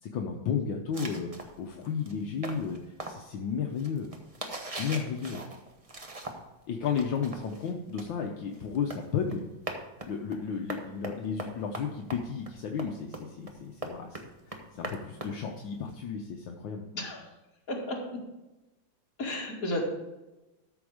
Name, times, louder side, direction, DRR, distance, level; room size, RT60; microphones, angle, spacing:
voice 1, 0.0-4.1 4.8-5.4 6.7-9.4 10.1-14.3 14.7-16.8, left 6 dB, 75° left, 2 dB, 1.5 m, -33 dB
sound 1, 0.9-6.6 6.9-15.9, right 2 dB, 30° right, 0.7 m, -41 dB
voice 2, 17.7-18.2 19.2-19.8, left 1 dB, 45° left, -2 dB, 2.4 m, -33 dB
13.0 x 6.2 x 4.9 m, 1.0 s
omnidirectional pair, 2.2 m